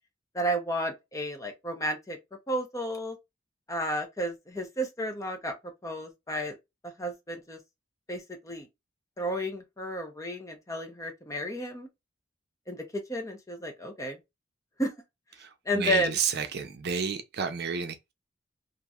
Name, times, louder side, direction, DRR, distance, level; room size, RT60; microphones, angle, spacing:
voice 1, 0.3-2.2 2.5-3.2 3.7-5.5 5.8-6.6 6.8-7.6 8.1-8.7 9.2-11.9 12.7-14.2 14.8-14.9 15.7-16.2, equal, 15° left, 0.7 m, -32 dB
voice 2, 15.4-18.1, right 6 dB, 55° right, 0.6 m, -31 dB
2.9 x 2.5 x 2.3 m
head